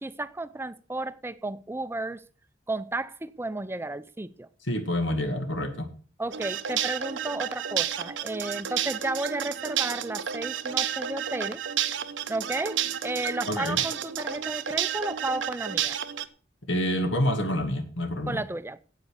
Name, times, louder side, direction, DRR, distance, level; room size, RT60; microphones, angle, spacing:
voice 1, 0.0-2.2 2.7-4.5 6.2-11.6 12.3-16.0 18.3-18.8, right 2 dB, 15° right, 0.5 m, -33 dB
voice 2, 4.7-5.9 13.5-13.8 16.7-18.4, equal, 85° left, 2.2 m, -27 dB
sound 1, 6.3-16.2, right 9 dB, 80° right, 0.9 m, -31 dB
9.2 x 8.4 x 6.5 m
head